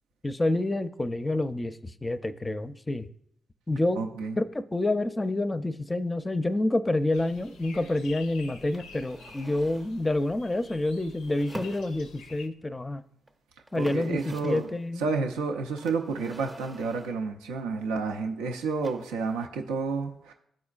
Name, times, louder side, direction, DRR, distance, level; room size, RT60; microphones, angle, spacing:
voice 1, 0.2-3.1 3.7-4.0 4.4-13.0 13.7-15.0, left 2 dB, 25° left, 12 dB, 0.5 m, -28 dB
voice 2, 4.0-4.4 13.7-14.7 15.0-20.3, right 4 dB, 90° right, 3 dB, 0.4 m, -30 dB
sound 1, 7.1-12.5, left 4 dB, 90° left, 0.5 m, -49 dB
sound 2, 8.7-10.0 11.2-12.3 13.3-13.4 13.6-14.8 15.8-17.3 18.8-19.5, right 2 dB, 25° right, 0.6 m, -46 dB
12.0 x 4.3 x 2.4 m, 0.71 s
hypercardioid pair, 40°, 0 cm